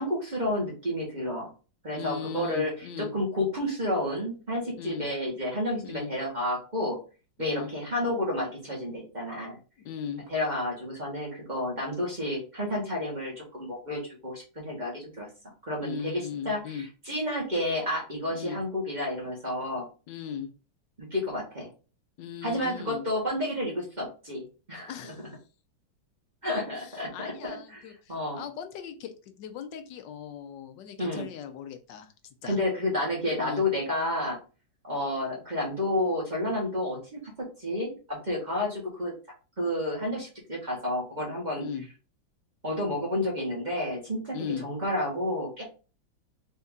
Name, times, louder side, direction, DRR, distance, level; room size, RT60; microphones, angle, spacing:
voice 1, 0.0-1.5 1.8-7.0 7.4-9.6 10.3-15.3 15.6-19.9 21.0-21.7 22.4-24.9 26.4-27.8 28.1-28.4 31.0-31.2 32.4-34.4 34.8-39.1 39.6-41.6 42.6-44.4 44.6-45.7, left 1 dB, 25° right, -3 dB, 1.3 m, -30 dB
voice 2, 1.9-3.1 4.8-5.1 5.8-6.1 7.4-7.7 9.8-10.2 15.8-16.9 18.3-18.6 20.1-20.5 22.2-23.0 24.9-25.2 26.7-32.1 32.4-32.6 33.4-33.6 41.6-41.9 44.3-44.7, left 7 dB, 70° left, 8 dB, 1.3 m, -38 dB
4.4 x 2.8 x 3.6 m, 0.35 s
omnidirectional pair, 2.1 m